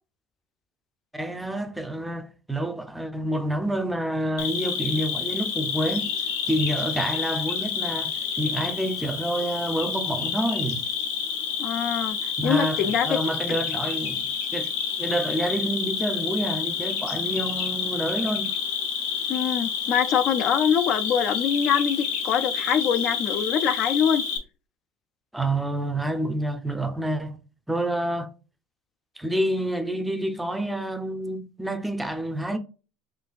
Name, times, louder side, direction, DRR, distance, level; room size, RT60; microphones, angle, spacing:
voice 1, 1.1-6.1 6.5-10.9 12.4-14.3 14.5-14.7 15.0-18.5 25.3-27.4 27.7-28.3 29.2-32.6, right 1 dB, 5° right, 0.5 m, -28 dB
Cricket, 4.4-24.4, left 6 dB, 90° left, 0.9 m, -29 dB
voice 2, 11.6-13.2 19.3-24.2, left 8 dB, 50° left, 0.4 m, -24 dB
3.9 x 3.2 x 2.3 m
supercardioid pair, 120°, 0 cm